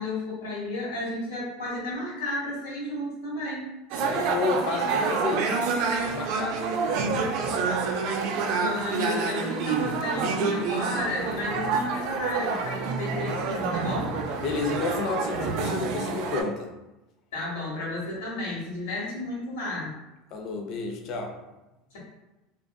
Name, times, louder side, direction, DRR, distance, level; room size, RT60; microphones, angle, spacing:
voice 1, 0.0-3.7 8.4-14.1 17.3-19.9, left 2 dB, 85° left, -6 dB, 1.1 m, -32 dB
sound 1, 3.9-16.4, right 4 dB, 65° right, 0.4 m, -28 dB
voice 2, 4.0-5.6 6.0-6.6 14.4-16.7 20.3-21.4, left 4 dB, 55° left, 3 dB, 0.5 m, -30 dB
2.5 x 2.4 x 2.2 m, 0.99 s
hypercardioid pair, 90°, 0 cm